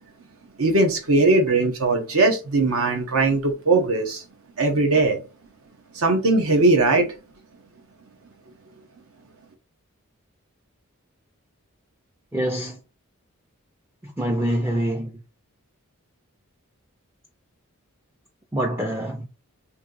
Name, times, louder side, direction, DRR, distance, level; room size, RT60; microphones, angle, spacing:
voice 1, 0.6-4.2 4.6-5.2 5.9-7.2, right 2 dB, 75° right, 1.1 m, -20 dB
voice 2, 12.3-12.8 14.0-15.2 18.5-19.3, right 1 dB, 10° right, 0.4 m, -25 dB
3.2 x 2.8 x 3.9 m
head